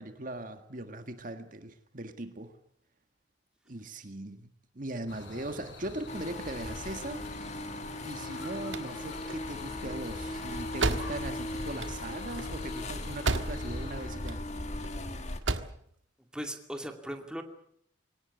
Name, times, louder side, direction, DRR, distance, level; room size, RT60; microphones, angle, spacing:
voice 1, 0.0-2.5 3.7-4.5 4.7-7.2 8.0-14.4, right 1 dB, 45° right, 8 dB, 1.7 m, -40 dB
sound 1, 5.1-14.1, left 1 dB, 75° left, 6.0 m, -47 dB
sound 2, 6.1-15.4, left 1 dB, 35° left, 1.8 m, -38 dB
sound 3, 8.5-13.9 14.1-14.9 15.2-15.8, right 3 dB, 85° right, 1.5 m, -34 dB
voice 2, 16.3-17.4, equal, 5° right, 4 dB, 2.4 m, -38 dB
23.0 x 18.5 x 8.3 m, 0.67 s
head